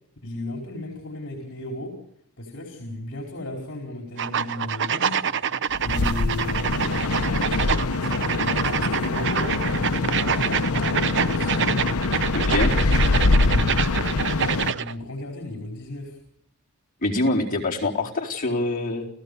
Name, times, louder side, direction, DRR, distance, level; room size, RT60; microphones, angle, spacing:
voice 1, 0.2-2.0 2.4-5.2 5.8-11.8 12.5-16.2, left 2 dB, 55° left, 1 dB, 4.7 m, -35 dB
sound 1, 4.2-14.9, right 7 dB, 60° right, 0.8 m, -26 dB
sound 2, 5.7-14.7, left 3 dB, 75° left, 0.8 m, -24 dB
voice 2, 12.3-12.8 17.0-19.1, left 2 dB, 40° left, -2 dB, 4.1 m, -25 dB
29.5 x 16.5 x 6.9 m, 0.69 s
head